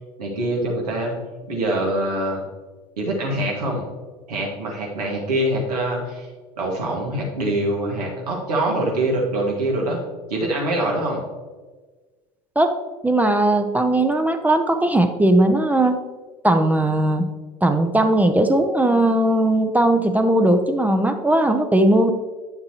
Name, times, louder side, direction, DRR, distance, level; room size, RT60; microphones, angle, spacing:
voice 1, 0.2-1.2 1.4-2.4 3.0-3.8 4.3-6.3 6.6-10.0 10.3-11.2, right 1 dB, 80° right, -1 dB, 2.0 m, -24 dB
voice 2, 13.0-16.0 16.4-17.3 17.6-22.1, right 1 dB, 10° right, 6 dB, 0.7 m, -18 dB
9.6 x 6.6 x 3.0 m, 1.3 s
hypercardioid pair, 70°, 20 cm